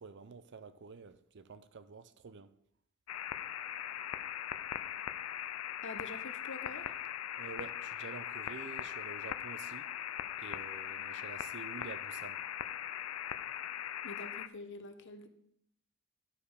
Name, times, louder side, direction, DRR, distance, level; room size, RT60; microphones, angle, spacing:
voice 1, 0.0-2.5 7.3-9.9 10.4-12.5, right 4 dB, 55° right, 0.5 m, -49 dB
sound 1, 3.1-14.5, left 10 dB, 75° left, 0.4 m, -40 dB
voice 2, 5.8-6.9 11.0-11.1 14.0-15.3, left 2 dB, 60° left, 1.0 m, -46 dB
11.5 x 5.2 x 4.8 m
head